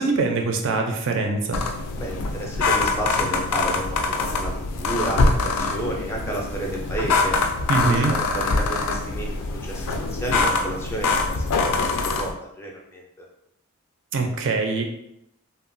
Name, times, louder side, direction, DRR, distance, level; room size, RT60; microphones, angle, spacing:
voice 1, 0.0-1.6 7.7-8.1 14.1-14.8, right 3 dB, 60° right, 3 dB, 0.4 m, -23 dB
sound 1, 1.5-12.3, left 3 dB, 90° left, 0.4 m, -24 dB
voice 2, 2.0-7.4 7.8-9.3 9.6-11.4 12.0-13.0, right 1 dB, 10° left, -1 dB, 0.4 m, -31 dB
2.9 x 2.2 x 2.5 m, 0.80 s
head